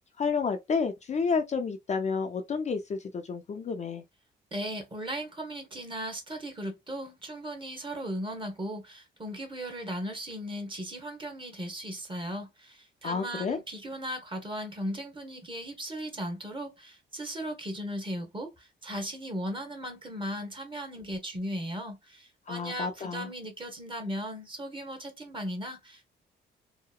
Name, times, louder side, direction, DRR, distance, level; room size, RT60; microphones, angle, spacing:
voice 1, 0.2-4.0 13.0-13.6 22.5-23.3, left 5 dB, 35° left, 0.5 m, -30 dB
voice 2, 4.5-26.1, equal, 25° right, 1.0 m, -37 dB
2.8 x 2.0 x 2.3 m
cardioid pair, 90°, 20 cm